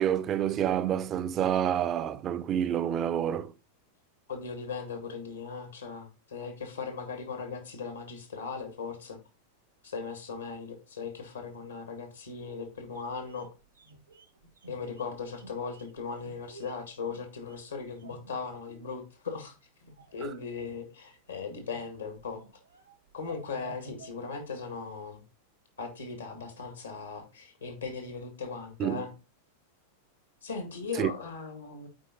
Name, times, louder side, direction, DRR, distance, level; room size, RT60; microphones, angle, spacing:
voice 1, 0.0-3.5 28.8-29.0 31.0-31.1, right 10 dB, 30° right, 0.6 m, -28 dB
voice 2, 4.3-9.2 9.8-13.5 14.7-19.5 19.8-22.4 23.1-25.2 25.8-29.1 30.4-31.9, left 5 dB, 75° left, 2.1 m, -38 dB
sound 1, 12.4-18.9 19.3-20.2 20.5-21.2 21.5-24.9 25.1-25.2, right 3 dB, 80° right, 1.4 m, -52 dB
8.8 x 4.5 x 4.1 m
figure-of-eight pair, 90°, 0 cm